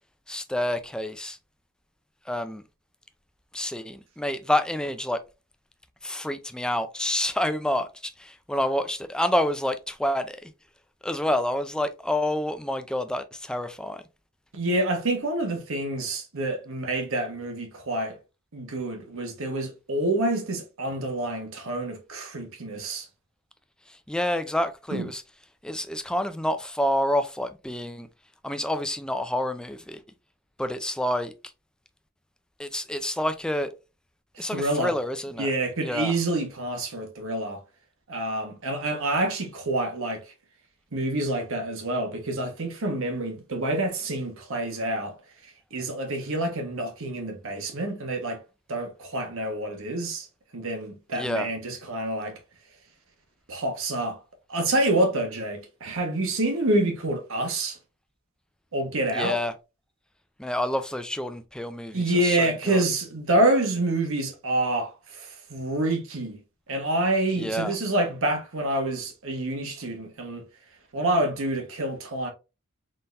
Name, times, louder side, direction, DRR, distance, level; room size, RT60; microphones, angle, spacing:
voice 1, 0.3-1.4 2.3-2.6 3.5-5.2 6.0-10.5 11.0-14.0 23.9-25.2 25.6-28.1 28.4-30.0 30.6-31.3 32.6-33.7 34.4-35.5 35.8-36.1 51.1-51.5 59.1-59.5 60.4-62.8 67.4-67.7, left 1 dB, 5° left, 0.4 m, -28 dB
voice 2, 14.5-18.2 18.5-23.1 24.9-25.1 34.3-34.9 35.4-37.6 38.1-40.2 40.9-45.2 45.4-48.4 48.7-50.3 50.5-52.4 53.5-54.2 54.5-57.8 58.7-59.4 61.9-66.4 66.7-70.4 70.9-72.3, right 1 dB, 65° right, 1.3 m, -27 dB
4.1 x 3.8 x 2.5 m
head